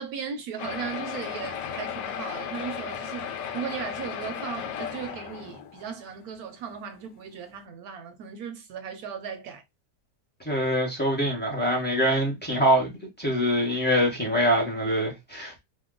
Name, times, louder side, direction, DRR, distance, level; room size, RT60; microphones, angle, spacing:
voice 1, 0.0-9.6, right 7 dB, 70° right, 1.0 m, -37 dB
sound 1, 0.6-6.0 6.7-6.8 7.1-7.2 7.5-7.6, left 8 dB, 85° left, 1.2 m, -35 dB
voice 2, 10.4-15.6, equal, 10° left, 0.6 m, -24 dB
2.8 x 2.1 x 3.6 m
omnidirectional pair, 1.8 m